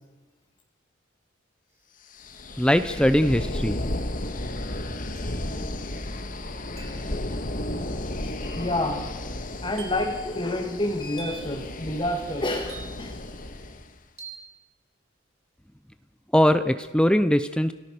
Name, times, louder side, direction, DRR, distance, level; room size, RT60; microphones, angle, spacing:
sound 1, 1.7-1.8 2.9-3.4 5.2-5.5 6.8-7.1 8.4-8.7 9.8-10.2 11.2-11.6 12.7-13.2 14.2-14.5, right 5 dB, 35° right, 6.4 m, -45 dB
sound 2, 2.1-13.9, left 1 dB, 45° left, 1.9 m, -33 dB
voice 1, 2.6-3.8 16.3-17.7, equal, 5° left, 11 dB, 0.7 m, -21 dB
voice 2, 8.2-9.1 9.6-13.2, left 1 dB, 25° left, 1 dB, 2.2 m, -29 dB
29.0 x 18.5 x 6.8 m, 1.2 s
head